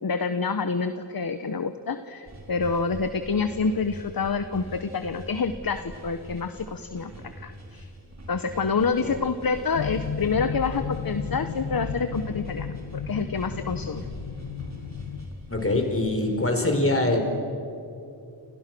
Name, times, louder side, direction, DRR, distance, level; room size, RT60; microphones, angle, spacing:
voice 1, 0.0-7.1 7.4-7.9 8.3-14.0, left 4 dB, 50° left, 9 dB, 1.2 m, -27 dB
sound 1, 2.3-16.4, equal, 35° right, 4.7 m, -43 dB
sound 2, 9.7-15.3, left 6 dB, 90° left, 1.6 m, -34 dB
voice 2, 15.5-17.2, left 2 dB, 30° left, 4 dB, 5.0 m, -23 dB
30.0 x 29.0 x 6.2 m, 2.6 s
wide cardioid pair, 105°, 45 cm